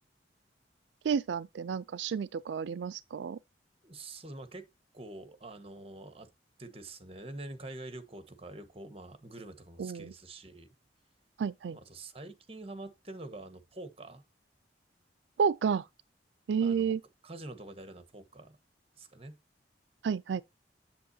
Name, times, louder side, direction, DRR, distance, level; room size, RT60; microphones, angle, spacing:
voice 1, 1.0-3.4 9.8-10.1 11.4-11.8 15.4-15.9 16.5-17.0 20.0-20.4, right 6 dB, 85° right, 0.4 m, -30 dB
voice 2, 3.8-4.7 4.9-6.3 6.6-10.7 11.7-14.2 16.6-17.0 17.2-18.6 18.9-19.4, right 2 dB, 35° right, 1.3 m, -46 dB
7.8 x 7.4 x 2.7 m
head